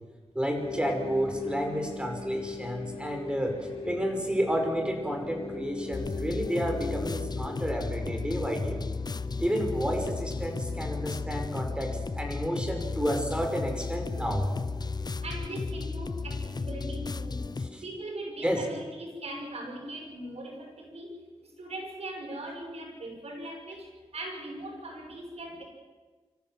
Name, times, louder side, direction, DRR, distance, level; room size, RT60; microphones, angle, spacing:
voice 1, 0.3-8.8 9.4-14.5 17.7-17.8 18.4-18.6, equal, 10° right, 3 dB, 5.6 m, -30 dB
sound 1, 0.5-17.8, left 3 dB, 60° left, 5.1 m, -41 dB
sound 2, 5.9-17.7, left 4 dB, 40° left, 0.7 m, -34 dB
voice 2, 15.2-25.7, right 1 dB, 75° right, 1 dB, 6.1 m, -40 dB
25.5 x 14.5 x 7.7 m, 1.3 s
cardioid pair, 60°, 11 cm